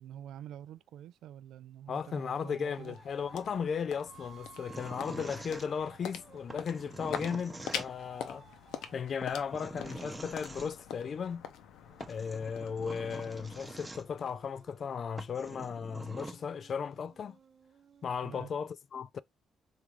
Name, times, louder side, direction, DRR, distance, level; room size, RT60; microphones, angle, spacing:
voice 1, 0.0-3.0 18.2-18.5, right 10 dB, 85° right, 0.3 m, -47 dB
voice 2, 1.9-8.5 8.9-11.5 12.1-17.4 18.0-19.2, left 6 dB, 55° left, 0.4 m, -36 dB
sound 1, 2.0-3.6 4.0-11.4 11.8-18.2, right 7 dB, 50° right, 0.7 m, -59 dB
sound 2, 2.7-14.8, left 9 dB, 85° left, 0.7 m, -45 dB
sound 3, 4.7-6.0 6.5-8.2 9.2-10.7 11.7-11.8 12.0-14.3 14.8-14.9 15.2-16.3, right 2 dB, 15° right, 0.8 m, -45 dB
3.7 x 3.5 x 3.1 m
cardioid pair, 90°, 0 cm